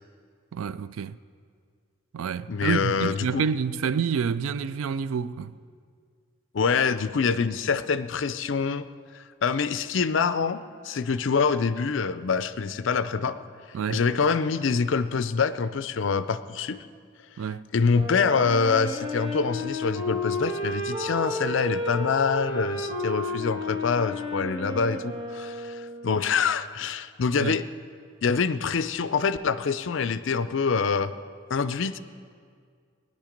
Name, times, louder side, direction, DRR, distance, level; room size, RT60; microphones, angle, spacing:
voice 1, 0.5-1.2 2.1-5.5 13.7-14.0 17.4-17.6 27.4-27.6, right 6 dB, 85° right, 0.4 m, -28 dB
voice 2, 2.5-3.4 6.5-8.9 9.1-13.4 13.9-16.8 17.7-27.6 28.2-31.1 31.5-32.0, left 5 dB, 65° left, 0.5 m, -25 dB
Wind instrument woodwind instrument, 17.9-26.2, left 2 dB, 25° right, 1.4 m, -32 dB
16.5 x 10.5 x 5.1 m
head